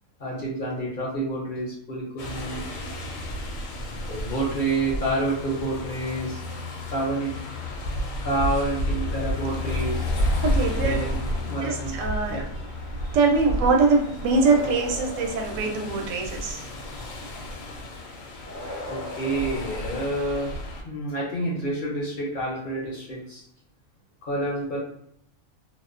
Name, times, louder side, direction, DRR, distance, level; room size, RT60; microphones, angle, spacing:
voice 1, 0.2-2.7 4.1-6.4 6.9-7.4 8.2-10.1 10.8-11.2 11.5-12.0 12.3-12.4 18.9-20.5 20.8-23.4 24.2-24.8, right 2 dB, 55° left, -3 dB, 0.6 m, -28 dB
sound 1, 2.2-20.8, left 1 dB, 75° left, 0.9 m, -31 dB
voice 2, 9.4-9.9 10.4-11.1 11.5-12.4 12.9-17.0, right 4 dB, 75° right, 2 dB, 0.9 m, -24 dB
sound 2, 14.2-16.3 18.4-20.5, left 1 dB, 25° right, 0.3 m, -39 dB
2.4 x 2.1 x 2.4 m, 0.68 s
omnidirectional pair, 1.4 m